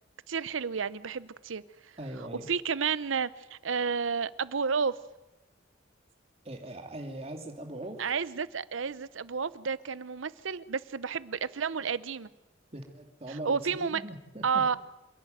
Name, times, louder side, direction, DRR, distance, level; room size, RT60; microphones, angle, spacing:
voice 1, 0.3-1.6 2.5-4.9 8.0-12.3 13.3-14.0 14.4-14.8, right 6 dB, 85° right, 18 dB, 0.7 m, -31 dB
voice 2, 2.0-2.5 6.4-8.1 12.7-14.7, right 1 dB, 30° right, 4 dB, 2.6 m, -41 dB
27.0 x 11.0 x 9.2 m, 0.99 s
head